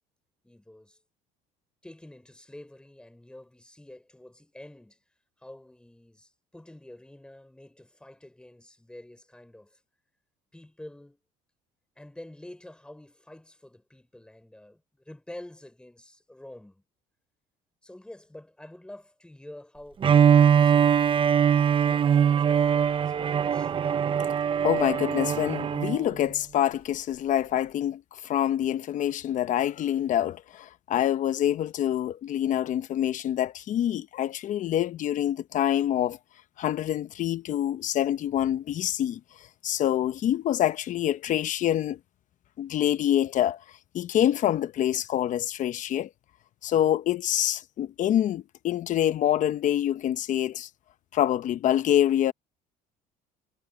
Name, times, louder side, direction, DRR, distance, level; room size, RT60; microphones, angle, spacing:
voice 1, 0.4-1.0 1.8-5.0 5.4-9.8 10.5-11.2 12.0-16.8 17.8-21.0 21.9-23.7, left 1 dB, 5° left, 5.1 m, -48 dB
Bowed string instrument, 20.0-26.0, right 8 dB, 30° right, 0.7 m, -22 dB
voice 2, 24.6-36.2 36.6-39.2 39.6-42.0 42.6-43.6 43.9-46.1 46.6-50.7 51.1-52.3, left 11 dB, 50° left, 0.8 m, -26 dB
cardioid pair, 125°, 17 cm